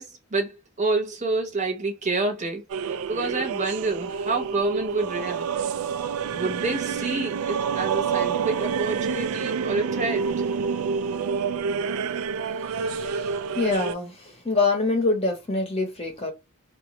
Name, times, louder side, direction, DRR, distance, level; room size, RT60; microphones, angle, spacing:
voice 1, 0.0-5.5 6.3-10.3, right 3 dB, 35° right, 0.8 m, -28 dB
sound 1, 2.7-13.9, right 6 dB, 80° right, 0.3 m, -28 dB
voice 2, 12.8-16.3, left 3 dB, 25° left, 0.8 m, -25 dB
2.9 x 2.1 x 2.9 m
head